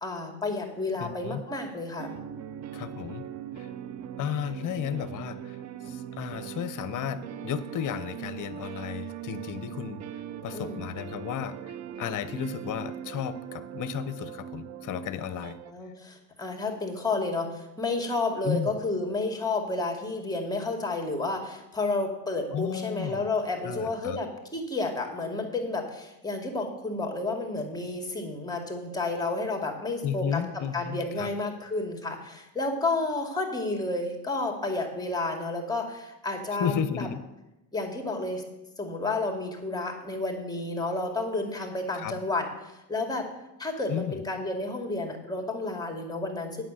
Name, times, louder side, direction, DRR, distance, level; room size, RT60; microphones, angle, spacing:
voice 1, 0.0-2.1 10.5-10.8 15.7-37.1 37.7-38.4 38.8-43.3 43.6-46.6, left 2 dB, 10° left, 2 dB, 2.3 m, -31 dB
voice 2, 1.0-1.4 2.7-3.3 3.6-3.7 4.2-15.6 18.4-18.7 22.5-23.2 23.6-24.2 30.0-31.3 36.6-37.2 41.9-42.2 43.9-44.2, left 9 dB, 40° left, 12 dB, 0.9 m, -33 dB
sound 1, 2.0-15.7, right 10 dB, 35° right, 0.6 m, -40 dB
9.1 x 6.5 x 7.6 m, 0.94 s
supercardioid pair, 90°, 47 cm